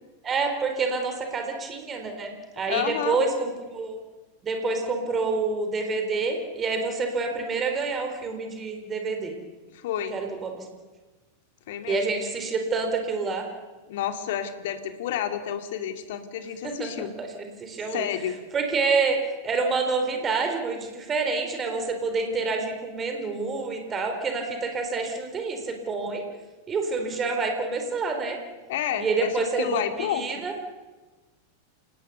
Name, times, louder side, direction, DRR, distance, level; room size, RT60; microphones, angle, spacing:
voice 1, 0.2-4.0 4.4-9.4 10.1-10.7 11.9-13.5 16.6-17.3 17.6-18.1 18.5-19.2 19.4-26.2 26.7-28.4 29.0-30.5, right 4 dB, 20° right, 5 dB, 3.9 m, -27 dB
voice 2, 2.7-3.2 9.7-10.2 11.7-12.0 13.9-17.1 17.9-18.4 28.7-30.3, left 9 dB, 55° left, 8 dB, 2.4 m, -30 dB
28.0 x 19.0 x 6.9 m, 1.2 s
figure-of-eight pair, 90°, 0 cm